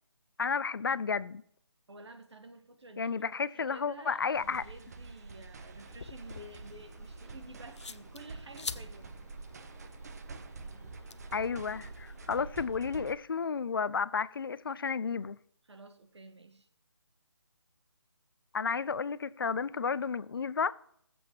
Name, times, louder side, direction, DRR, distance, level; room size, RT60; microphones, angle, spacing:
voice 1, 0.4-1.4 3.0-4.6 11.3-15.4 18.5-20.7, left 5 dB, 55° left, 0.4 m, -32 dB
voice 2, 1.9-9.2 15.7-16.7, right 2 dB, 80° right, 1.4 m, -51 dB
sound 1, 4.3-13.2, right 3 dB, 35° right, 0.8 m, -47 dB
sound 2, 5.8-12.6, left 4 dB, 85° left, 0.7 m, -48 dB
19.5 x 7.8 x 3.1 m
figure-of-eight pair, 165°, 14 cm